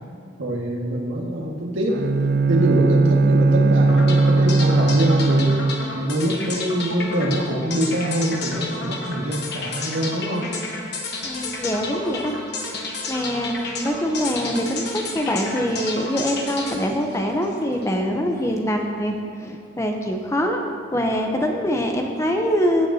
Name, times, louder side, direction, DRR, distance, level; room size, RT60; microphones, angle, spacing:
voice 1, 0.4-2.0 2.5-10.6, equal, 80° right, -2 dB, 1.8 m, -24 dB
Bowed string instrument, 1.9-6.0, right 3 dB, 55° right, 0.4 m, -18 dB
sound 1, 3.9-18.0, left 3 dB, 55° left, 1.2 m, -31 dB
voice 2, 11.2-12.4 13.1-20.6 20.9-22.9, equal, 15° left, 2 dB, 0.7 m, -24 dB
16.0 x 8.9 x 2.8 m, 2.2 s
head